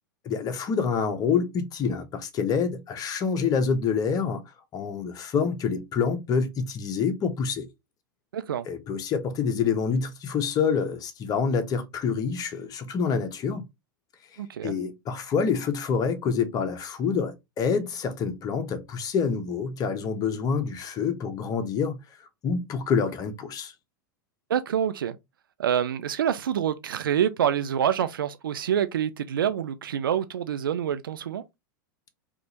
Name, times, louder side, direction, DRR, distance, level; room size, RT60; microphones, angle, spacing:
voice 1, 0.2-4.4 4.7-7.7 8.7-13.7 14.6-22.0 22.4-23.7, left 6 dB, 35° left, 0.9 m, -27 dB
voice 2, 8.3-8.7 14.4-14.7 24.5-25.1 25.6-31.4, right 9 dB, 90° right, 0.4 m, -26 dB
3.5 x 2.5 x 2.9 m
hypercardioid pair, 105°, 11 cm